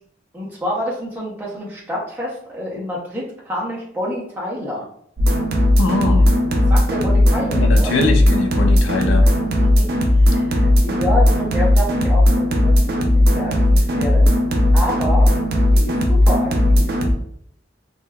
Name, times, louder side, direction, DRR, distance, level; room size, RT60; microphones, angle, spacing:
voice 1, 0.3-4.9 6.7-7.9 9.6-13.0 13.3-14.3 14.7-15.3 15.7-17.0, equal, 10° right, -5 dB, 0.7 m, -28 dB
sound 1, 5.2-17.1, left 1 dB, 50° right, 0.4 m, -16 dB
voice 2, 5.8-6.3 7.5-9.3, left 2 dB, 90° left, 6 dB, 0.4 m, -22 dB
3.4 x 2.1 x 2.2 m, 0.65 s
head